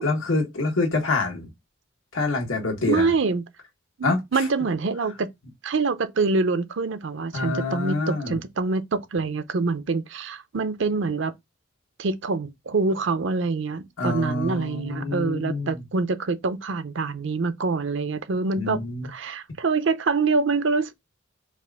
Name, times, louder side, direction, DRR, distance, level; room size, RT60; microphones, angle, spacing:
voice 1, 0.0-1.5 2.1-3.1 4.0-4.4 7.3-8.4 14.0-15.8 18.6-19.1, left 3 dB, 85° left, 1.4 m, -26 dB
voice 2, 2.9-3.4 4.0-5.3 5.6-11.3 12.0-20.9, right 4 dB, 65° right, 0.5 m, -25 dB
4.7 x 2.5 x 3.5 m
head